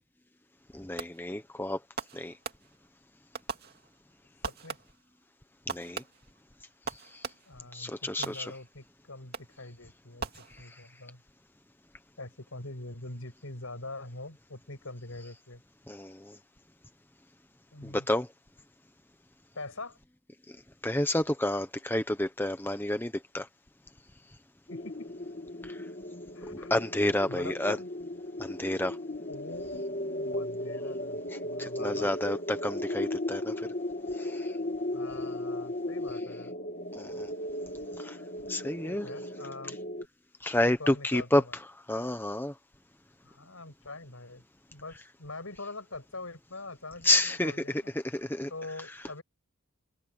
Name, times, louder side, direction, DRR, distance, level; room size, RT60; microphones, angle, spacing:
voice 1, 0.7-1.8 2.1-2.3 5.7-6.0 6.9-7.3 7.7-8.5 10.5-10.8 15.9-16.4 17.8-18.3 20.5-20.6 20.8-23.5 25.6-25.8 26.5-27.8 28.4-29.0 31.3-33.7 34.1-34.6 36.9-37.3 38.0-38.2 38.5-39.1 40.4-42.5 47.0-48.5, left 1 dB, 10° left, 1.1 m, -30 dB
Fireworks, 1.0-1.4 2.0-3.0 3.3-4.1 4.4-5.1 5.7-7.7 8.2-8.9 9.3-9.7 10.2-11.0, right 4 dB, 45° right, 2.4 m, -41 dB
voice 2, 4.5-4.8 7.5-11.2 12.2-15.6 17.7-18.1 19.5-20.0 24.7-25.1 26.3-26.7 27.3-27.9 29.3-32.1 34.9-36.5 38.8-39.8 40.6-41.5 43.2-44.4 44.7-47.9 48.5-49.2, left 2 dB, 75° left, 6.4 m, -43 dB
sound 1, 24.7-40.1, left 1 dB, 40° left, 3.1 m, -36 dB
head